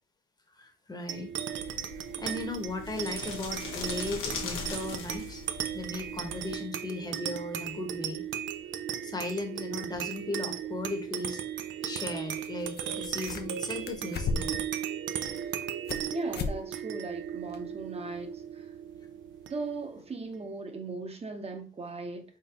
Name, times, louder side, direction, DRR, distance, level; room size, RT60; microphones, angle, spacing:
voice 1, 0.6-1.3 2.2-5.4 5.7-8.2 9.0-11.4 11.8-14.5, left 2 dB, 20° left, 1.0 m, -37 dB
sound 1, 1.1-19.9, right 9 dB, 70° right, 0.5 m, -37 dB
sound 2, 1.5-6.5, left 5 dB, 85° left, 1.0 m, -41 dB
sound 3, 10.7-10.8 12.4-12.5 12.7-13.6 13.9-14.7 15.2-16.1 16.3-16.6 16.9-17.0 17.5-17.6, left 4 dB, 55° left, 0.6 m, -35 dB
voice 2, 16.1-18.7 19.5-22.2, right 3 dB, 30° right, 1.0 m, -38 dB
4.1 x 3.7 x 2.9 m
cardioid pair, 90°, 20 cm